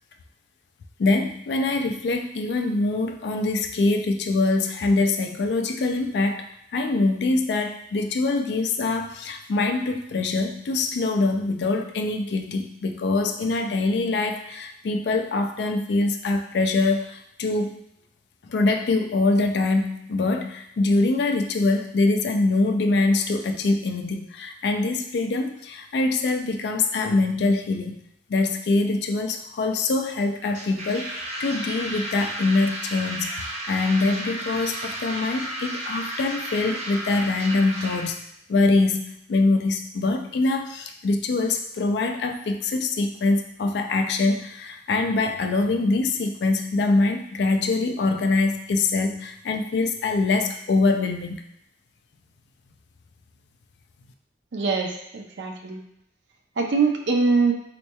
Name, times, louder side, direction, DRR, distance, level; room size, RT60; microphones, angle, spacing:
voice 1, 1.0-6.5 6.7-17.7 18.4-28.0 28.3-38.2 38.5-51.4, left 3 dB, 65° left, 5 dB, 0.4 m, -24 dB
sound 1, 30.4-38.1, right 1 dB, 40° right, 0.7 m, -33 dB
voice 2, 54.5-55.8 56.6-57.5, right 4 dB, 80° right, 3 dB, 0.6 m, -23 dB
4.1 x 3.0 x 2.2 m, 0.78 s
head